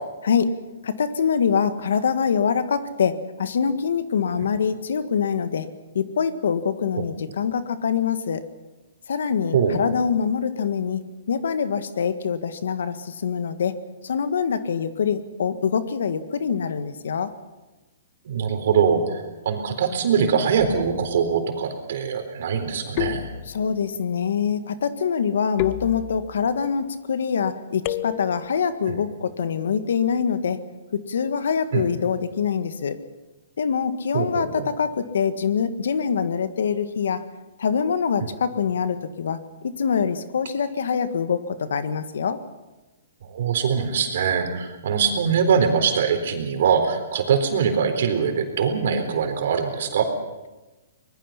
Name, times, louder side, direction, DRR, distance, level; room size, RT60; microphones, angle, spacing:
voice 1, 0.8-5.7 5.9-8.4 9.1-11.0 11.3-13.7 14.0-17.3 23.5-30.6 30.9-33.0 33.6-37.2 37.6-39.4 39.6-42.4, left 6 dB, 80° left, 11 dB, 1.6 m, -24 dB
voice 2, 9.5-9.9 18.3-23.3 28.9-29.0 31.7-31.9 34.1-34.7 38.2-38.3 43.2-50.1, right 6 dB, 65° right, 6 dB, 4.0 m, -23 dB
sound 1, 20.6-21.1 23.0-23.9 25.6-26.5 27.8-28.6, left 16 dB, 40° left, 0.6 m, -30 dB
24.0 x 20.5 x 5.8 m, 1.1 s
hypercardioid pair, 145°, 0 cm